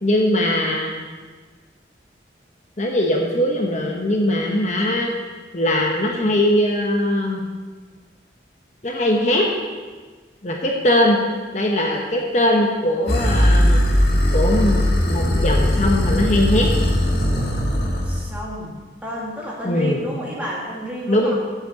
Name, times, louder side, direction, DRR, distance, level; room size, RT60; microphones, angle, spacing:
voice 1, 0.0-0.9 2.8-5.1 5.5-7.4 8.8-9.5 10.4-11.2 11.5-14.0 14.3-16.7 19.6-20.0 21.1-21.3, left 1 dB, 40° left, 0 dB, 1.1 m, -20 dB
sound 1, 13.1-18.3, equal, 60° left, 1.6 m, -19 dB
voice 2, 18.0-18.8 19.0-21.3, equal, 10° right, -5 dB, 2.0 m, -31 dB
8.1 x 7.7 x 6.9 m, 1.4 s
head